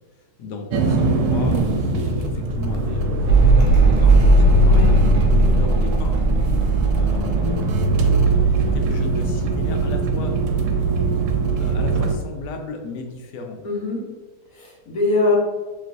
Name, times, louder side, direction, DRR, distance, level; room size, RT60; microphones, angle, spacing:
voice 1, 0.1-6.2 6.6-7.8 8.7-10.4 11.2-11.3 11.6-13.6, left 3 dB, 85° left, 4 dB, 1.2 m, -35 dB
sound 1, 0.7-12.1, right 4 dB, 75° right, 1.1 m, -20 dB
Mechanical fan, 3.3-10.1 10.4-11.2, right 1 dB, 55° right, 1.1 m, -19 dB
voice 2, 4.6-4.9 8.4-8.6 13.6-14.0 14.5-15.4, left 2 dB, 60° left, -3 dB, 1.5 m, -23 dB
5.3 x 3.1 x 2.6 m, 1.3 s
omnidirectional pair, 1.8 m